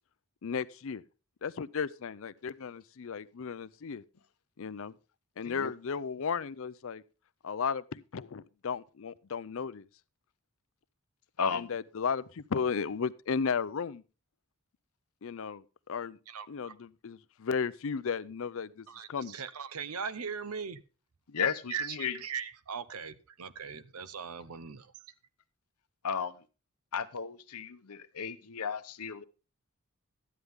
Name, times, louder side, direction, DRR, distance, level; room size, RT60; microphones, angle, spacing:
voice 1, 0.4-1.0 1.4-4.0 4.6-4.9 5.4-7.0 7.4-9.8 11.5-14.0 15.2-16.2 16.5-19.3, left 6 dB, 60° left, 0.5 m, -35 dB
voice 2, 11.4-11.7 21.3-22.2 26.0-26.4 26.9-29.2, left 6 dB, 90° left, 0.8 m, -34 dB
voice 3, 16.3-16.7 18.9-20.8 21.7-24.9, right 6 dB, 80° right, 0.8 m, -39 dB
13.0 x 9.6 x 3.5 m
head